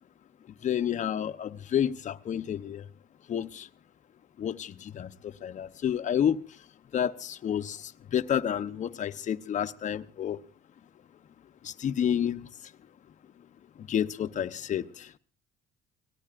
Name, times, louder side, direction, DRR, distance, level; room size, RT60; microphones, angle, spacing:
voice 1, 0.6-2.8 3.3-3.7 4.4-6.4 6.9-10.4 11.6-12.5 13.9-15.1, left 9 dB, 45° left, 0.9 m, -30 dB
29.5 x 18.5 x 2.5 m
cardioid pair, 110°, 17 cm